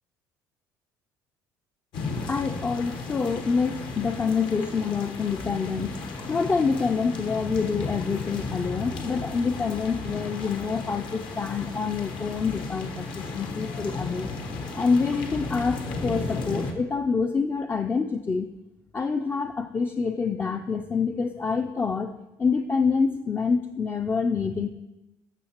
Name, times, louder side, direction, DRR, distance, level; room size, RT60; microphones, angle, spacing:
sound 1, 1.9-16.7, left 3 dB, 65° left, 1.1 m, -34 dB
voice 1, 2.2-14.3 14.7-18.5 18.9-22.1 22.4-24.7, left 5 dB, 25° left, 5 dB, 0.4 m, -26 dB
14.0 x 5.7 x 2.9 m, 0.98 s
supercardioid pair, 95°, 9 cm